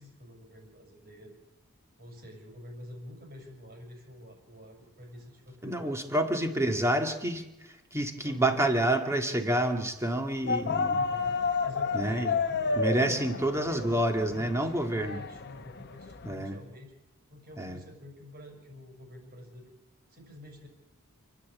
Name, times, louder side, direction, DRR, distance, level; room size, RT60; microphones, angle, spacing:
voice 1, 0.0-1.3 2.0-6.1 6.7-6.8 8.2-8.6 10.9-16.9 17.3-19.7 20.1-20.7, left 1 dB, 45° right, 2 dB, 6.4 m, -48 dB
voice 2, 5.6-7.4 7.9-11.0 11.9-12.3 12.8-15.2 16.2-16.6 17.6-17.8, right 1 dB, 15° right, 5 dB, 2.1 m, -28 dB
sound 1, 10.5-16.3, left 4 dB, 50° left, 1.1 m, -31 dB
28.5 x 10.5 x 8.6 m, 0.97 s
head